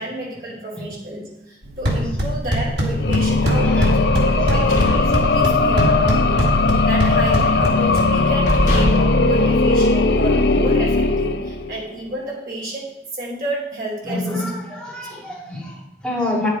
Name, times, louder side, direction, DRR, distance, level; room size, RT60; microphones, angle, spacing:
voice 1, 0.0-4.0 4.3-6.5 6.8-14.4 14.7-14.8 15.1-15.2, right 1 dB, 55° right, -3 dB, 3.0 m, -30 dB
sound 1, 1.6-8.6, equal, 70° right, 2.1 m, -23 dB
sound 2, 2.9-11.9, left 3 dB, 70° left, 0.7 m, -18 dB
voice 2, 3.8-4.1 14.0-16.5, left 1 dB, 5° left, -5 dB, 2.3 m, -27 dB
sound 3, 4.3-5.9 6.3-6.5 6.9-7.6 8.1-8.2 8.5-10.3, equal, 45° left, 2.0 m, -25 dB
9.4 x 7.3 x 4.8 m, 0.92 s
head